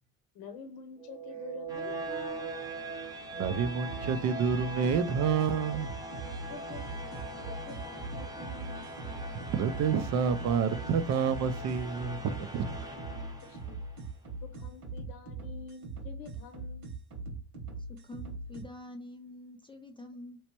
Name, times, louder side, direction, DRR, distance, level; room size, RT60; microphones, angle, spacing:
voice 1, 0.3-2.6 6.5-8.9 13.4-13.8 14.4-16.9, left 5 dB, 75° left, 0.8 m, -48 dB
sound 1, 1.0-14.0, right 2 dB, 10° right, 0.8 m, -41 dB
voice 2, 3.3-6.0 9.3-12.2 12.5-12.7, right 6 dB, 50° right, 0.5 m, -29 dB
sound 2, 3.4-18.6, right 3 dB, 85° right, 1.6 m, -41 dB
voice 3, 17.8-20.4, left 1 dB, 15° left, 0.3 m, -46 dB
3.2 x 3.0 x 2.9 m
cardioid pair, 110°, 36 cm